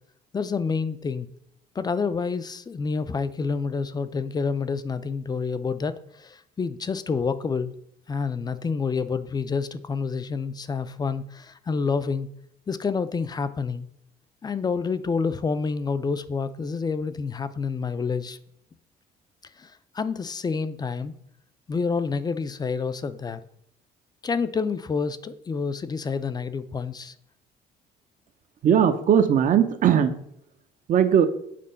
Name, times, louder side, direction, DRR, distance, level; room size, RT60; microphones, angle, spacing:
voice 1, 0.3-1.3 1.8-7.7 8.1-12.3 12.7-13.8 14.4-18.4 19.6-21.1 21.7-23.4 24.2-27.1, left 5 dB, 25° left, 13 dB, 0.4 m, -28 dB
voice 2, 28.6-30.2 30.9-31.3, right 8 dB, 50° right, 10 dB, 0.8 m, -19 dB
7.6 x 3.7 x 5.5 m, 0.73 s
cardioid pair, 110°, 17 cm